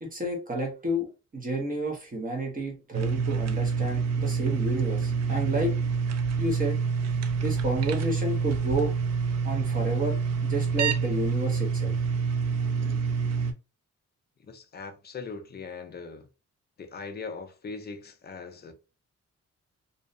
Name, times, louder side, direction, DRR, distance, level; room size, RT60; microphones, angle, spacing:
voice 1, 0.0-5.7 6.4-6.8 7.4-8.9 9.4-11.9, right 1 dB, 30° right, 0.7 m, -30 dB
sound 1, 2.9-13.5, right 5 dB, 65° right, 0.4 m, -27 dB
voice 2, 14.4-16.3 16.8-18.7, left 4 dB, 35° left, 0.4 m, -40 dB
2.6 x 2.1 x 2.5 m
wide cardioid pair, 160°, 29 cm